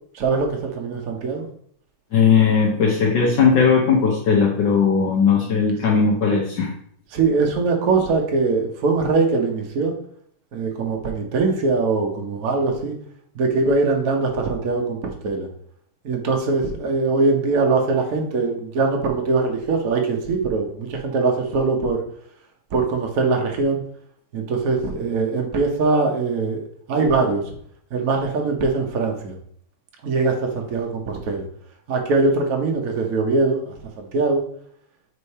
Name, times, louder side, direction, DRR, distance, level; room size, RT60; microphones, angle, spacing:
voice 1, 0.1-1.5 7.1-9.9 10.5-12.9 13.3-15.5 16.0-22.0 22.7-23.8 24.3-26.6 26.9-27.5 27.9-29.3 30.0-31.4 31.9-33.6 34.0-34.4, right 3 dB, 55° right, 2 dB, 1.3 m, -22 dB
voice 2, 2.1-6.7, left 5 dB, 70° left, -2 dB, 1.6 m, -18 dB
5.0 x 4.7 x 4.1 m, 0.64 s
omnidirectional pair, 2.1 m